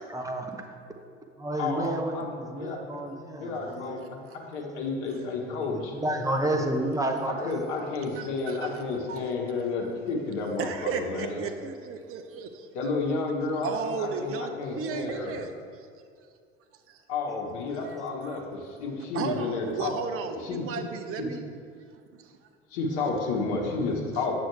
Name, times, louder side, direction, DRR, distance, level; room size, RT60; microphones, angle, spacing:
voice 1, 0.1-0.6 1.4-4.2 5.5-7.5, right 1 dB, 10° right, 4 dB, 0.9 m, -30 dB
voice 2, 1.6-2.8 3.4-4.0 4.5-5.9 6.4-6.5 7.2-11.4 12.7-15.4 17.1-19.9 20.3-20.8 21.2-21.3 22.7-24.4, left 3 dB, 60° left, -1 dB, 1.3 m, -31 dB
voice 3, 8.2-8.8 9.1-9.3 10.6-12.7 13.6-15.5 16.9-17.0 18.2-18.4 19.1-21.4, right 6 dB, 40° right, 7 dB, 0.8 m, -34 dB
9.5 x 6.2 x 3.3 m, 2.2 s
hypercardioid pair, 70°, 33 cm